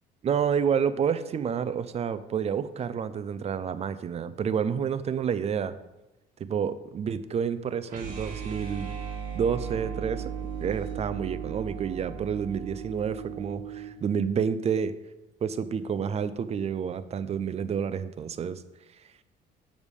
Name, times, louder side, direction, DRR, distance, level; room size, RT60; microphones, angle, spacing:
voice 1, 0.2-5.7 6.4-9.0 9.3-10.3 10.6-14.9 15.4-18.6, right 7 dB, 40° right, 14 dB, 0.5 m, -29 dB
sound 1, 7.9-14.0, right 7 dB, 55° right, 2.2 m, -36 dB
7.1 x 6.4 x 5.3 m, 1.0 s
cardioid pair, 110°, 17 cm